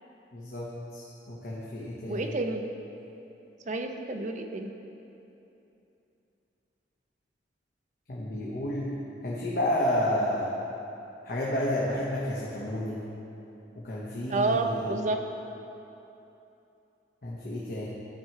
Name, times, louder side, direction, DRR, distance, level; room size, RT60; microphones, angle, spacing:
voice 1, 0.3-2.4 8.1-8.9 9.2-10.6 11.2-13.0 13.8-15.0 17.2-17.9, left 1 dB, 55° left, -6 dB, 1.0 m, -31 dB
voice 2, 2.1-2.6 3.7-4.7 14.3-15.2, right 3 dB, 40° right, 5 dB, 0.5 m, -29 dB
13.0 x 4.5 x 4.5 m, 2.9 s
head